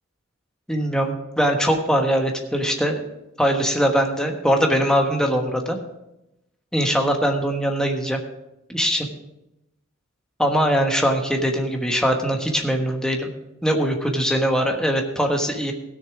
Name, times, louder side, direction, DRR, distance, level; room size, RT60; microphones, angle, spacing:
voice 1, 0.7-3.0 3.4-5.8 6.7-8.2 8.7-9.1 10.4-13.3 13.6-15.7, equal, 5° left, 3 dB, 1.2 m, -21 dB
17.0 x 6.6 x 4.8 m, 0.91 s
head